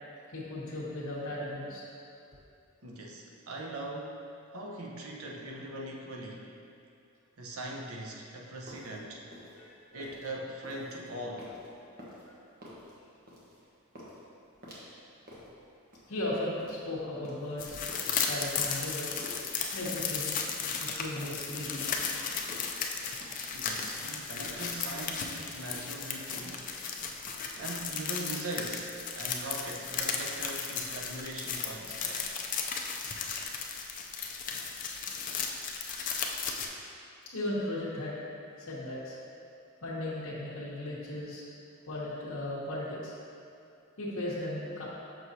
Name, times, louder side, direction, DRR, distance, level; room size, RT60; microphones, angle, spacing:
voice 1, 0.3-1.9 9.5-10.1 16.1-17.8 18.1-19.1 19.7-20.5 20.8-22.0 27.0-27.2 37.3-38.2 38.6-39.2 39.8-41.4 41.9-43.1 44.0-44.9, left 1 dB, 65° left, -8 dB, 1.0 m, -36 dB
voice 2, 2.8-6.5 7.4-9.2 9.9-11.5 23.5-26.6 27.5-32.3, right 1 dB, 70° right, -1 dB, 0.8 m, -41 dB
sound 1, 8.4-26.5, equal, 45° right, 1.2 m, -50 dB
sound 2, 17.6-36.7, left 6 dB, 40° left, 0.5 m, -35 dB
6.1 x 6.1 x 2.7 m, 2.6 s
head